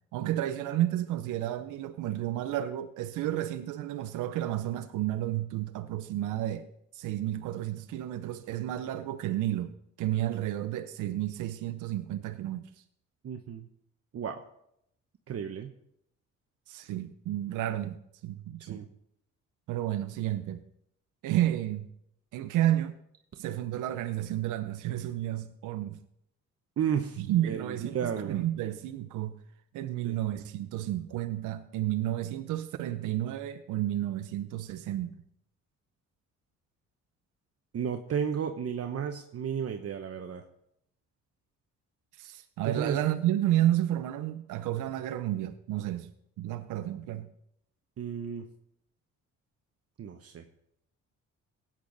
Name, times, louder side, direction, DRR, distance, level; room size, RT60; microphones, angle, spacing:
voice 1, 0.1-6.6 6.9-9.7 10.0-12.7 16.7-18.8 19.7-20.6 21.2-21.9 22.3-23.0 23.4-26.0 27.2-29.4 29.7-35.1 42.2-46.1 46.4-47.3, right 13 dB, 90° right, 0.7 m, -31 dB
voice 2, 13.2-13.7 14.1-14.4 15.3-15.7 18.6-18.9 26.8-28.4 30.0-30.1 37.7-40.4 42.6-43.0 48.0-48.4 50.0-50.4, right 8 dB, 50° right, 1.0 m, -33 dB
16.5 x 8.9 x 4.0 m
cardioid pair, 90°, 30 cm